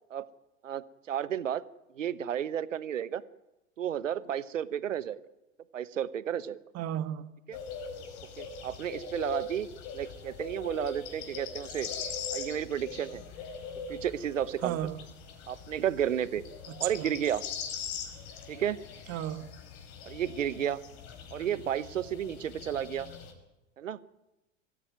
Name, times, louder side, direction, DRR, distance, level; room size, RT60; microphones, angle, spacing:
voice 1, 0.6-1.6 1.9-3.2 3.8-5.2 5.7-6.6 7.5-7.6 8.4-9.7 9.9-11.9 12.3-13.2 13.9-14.8 15.5-16.4 16.8-17.4 18.5-18.8 20.0-20.8 21.3-23.1 23.8-24.0, right 9 dB, 80° right, 17 dB, 1.1 m, -32 dB
voice 2, 6.7-7.3 14.6-15.0 16.8-17.2 19.1-19.5, right 11 dB, 40° right, 11 dB, 1.7 m, -34 dB
sound 1, 7.5-23.3, left 5 dB, 55° left, 5.3 m, -41 dB
23.0 x 15.0 x 9.3 m, 0.96 s
figure-of-eight pair, 85°, 38 cm